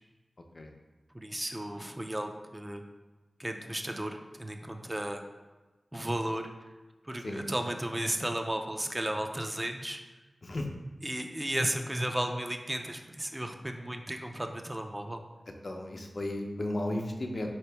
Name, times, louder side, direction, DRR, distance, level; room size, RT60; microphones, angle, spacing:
voice 1, 1.1-2.8 3.4-5.2 5.9-6.5 7.0-10.0 11.0-15.2, right 1 dB, 20° right, 4 dB, 0.4 m, -34 dB
voice 2, 15.6-17.5, left 1 dB, 55° left, 3 dB, 0.5 m, -34 dB
4.1 x 2.9 x 3.4 m, 1.2 s
cardioid pair, 45°, 0 cm